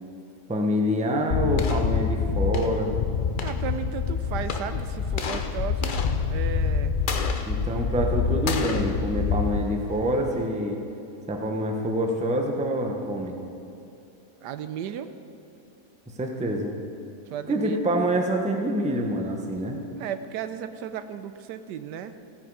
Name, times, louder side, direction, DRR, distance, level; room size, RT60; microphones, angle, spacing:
voice 1, 0.5-3.0 7.5-10.8 11.3-13.4 16.2-16.7 17.5-19.8, equal, 5° right, 2 dB, 0.7 m, -26 dB
sound 1, 1.3-10.4, left 6 dB, 90° left, 0.4 m, -26 dB
voice 2, 3.4-7.0 14.4-15.1 17.3-18.1 19.9-22.2, right 8 dB, 85° right, 11 dB, 1.2 m, -35 dB
16.0 x 8.8 x 4.8 m, 2.8 s
omnidirectional pair, 1.8 m